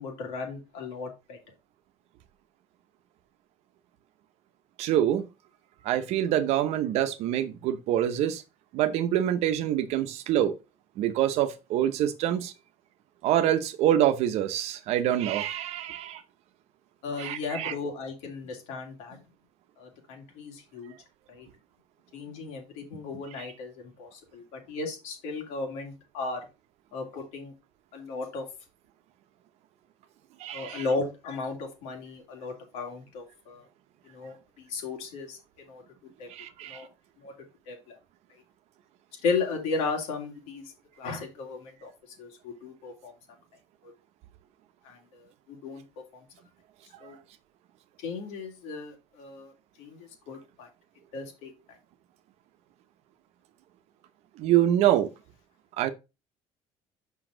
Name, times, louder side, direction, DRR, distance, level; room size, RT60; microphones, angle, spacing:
voice 1, 0.0-1.4 17.0-19.2 19.8-20.9 21.3-21.5 22.1-26.5 26.9-27.5 27.9-28.5 30.5-33.6 34.0-35.4 35.7-35.8 36.2-36.3 36.7-36.9 37.2-37.3 37.7-38.0 39.2-41.9 42.2-43.1 43.8-43.9 44.8-45.8 47.0-47.2 48.0-49.5 49.8-50.7 51.1-51.5, left 4 dB, 90° left, 2.7 m, -35 dB
voice 2, 4.8-5.2 5.8-8.4 8.7-10.5 11.0-12.5 13.2-16.2 17.2-17.7 30.4-30.8 36.3-36.8 54.4-55.1 55.8-55.9, right 11 dB, 70° right, 0.8 m, -25 dB
6.1 x 5.6 x 3.8 m
cardioid pair, 135°, 11 cm